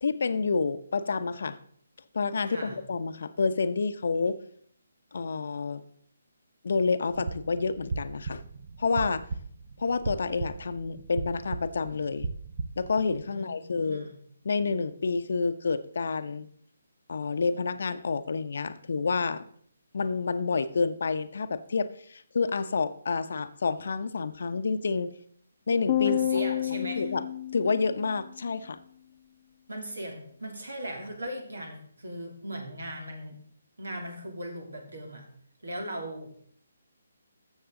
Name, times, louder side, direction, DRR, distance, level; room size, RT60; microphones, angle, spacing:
voice 1, 0.0-1.6 2.1-4.4 5.1-5.8 6.6-8.4 8.8-9.3 9.8-12.3 12.8-14.1 14.4-16.5 17.1-19.4 19.9-25.1 25.7-26.1 26.7-27.2 27.5-28.8, left 4 dB, 65° left, 12 dB, 0.8 m, -29 dB
voice 2, 2.5-2.8 13.3-14.1 26.0-27.1 29.7-33.4 33.8-35.3 35.6-36.5, equal, 80° right, 3 dB, 2.8 m, -38 dB
sound 1, 7.1-13.2, right 4 dB, 45° right, 0.9 m, -37 dB
sound 2, 25.9-28.3, left 12 dB, 35° left, 0.4 m, -29 dB
14.5 x 6.5 x 3.8 m, 0.62 s
figure-of-eight pair, 145°, 0 cm